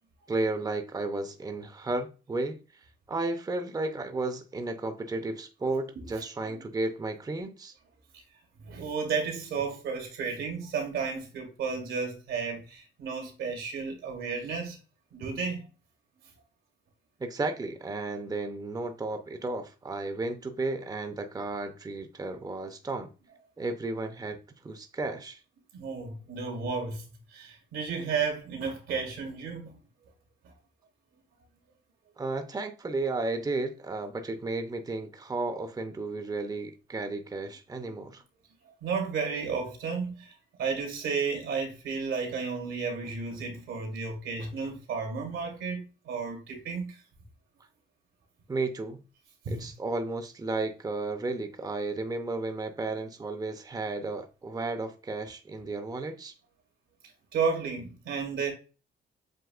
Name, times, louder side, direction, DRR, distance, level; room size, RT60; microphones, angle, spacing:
voice 1, 0.3-2.6 3.1-7.8 17.2-23.1 23.6-24.4 24.6-25.4 32.2-38.2 48.5-49.0 49.5-56.3, right 2 dB, 20° right, 0.7 m, -33 dB
voice 2, 8.6-14.8 15.1-15.7 25.7-27.0 27.3-29.8 38.8-40.3 40.6-47.0 49.5-49.6 57.3-58.5, right 5 dB, 90° right, 2.1 m, -32 dB
7.8 x 2.8 x 2.4 m
cardioid pair, 90°, 20 cm